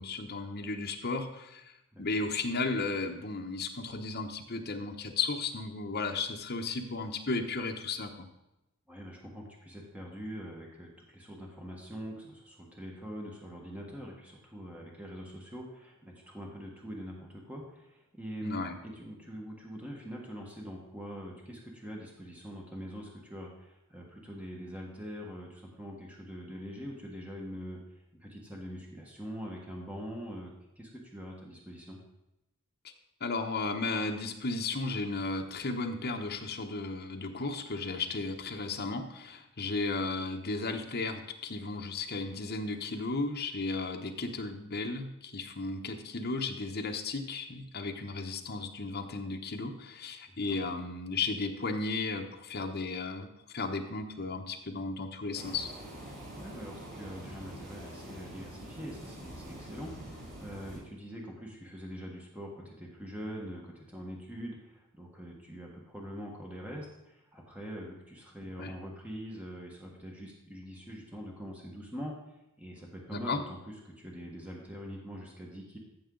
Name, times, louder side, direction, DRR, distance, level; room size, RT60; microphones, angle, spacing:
voice 1, 0.0-1.7 2.0-8.3 18.4-18.8 33.2-55.7 68.6-68.7 73.1-73.4, left 3 dB, 45° left, 3 dB, 1.0 m, -34 dB
voice 2, 8.9-32.0 50.5-50.6 56.3-72.2 72.6-75.8, equal, 5° right, -2 dB, 1.4 m, -43 dB
sound 1, 55.3-60.8, right 1 dB, 55° right, 3.3 m, -45 dB
14.5 x 6.3 x 3.9 m, 0.92 s
head